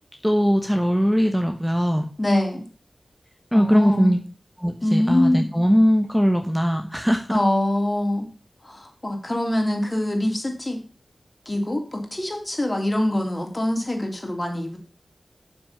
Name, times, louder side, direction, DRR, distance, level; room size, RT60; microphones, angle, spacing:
voice 1, 0.2-2.0 3.5-4.2 4.6-7.4, equal, 5° right, 5 dB, 1.2 m, -20 dB
voice 2, 2.2-2.7 3.5-4.1 4.8-5.5 7.3-8.3 8.6-10.8 11.4-14.8, left 1 dB, 35° left, 3 dB, 3.0 m, -24 dB
7.1 x 6.2 x 6.8 m, 0.38 s
cardioid pair, 40°, 0 cm